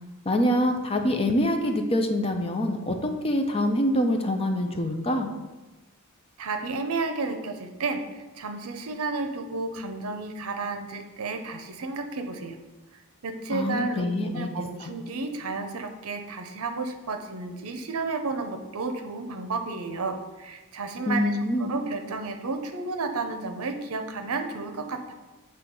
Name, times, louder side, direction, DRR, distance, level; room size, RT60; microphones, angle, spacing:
voice 1, 0.3-5.3 13.5-14.5 14.8-14.9 21.0-21.7, left 1 dB, 25° left, 4 dB, 0.6 m, -25 dB
voice 2, 6.4-12.6 13.2-25.1, right 3 dB, 70° right, 6 dB, 0.7 m, -32 dB
7.6 x 3.4 x 5.3 m, 1.2 s
head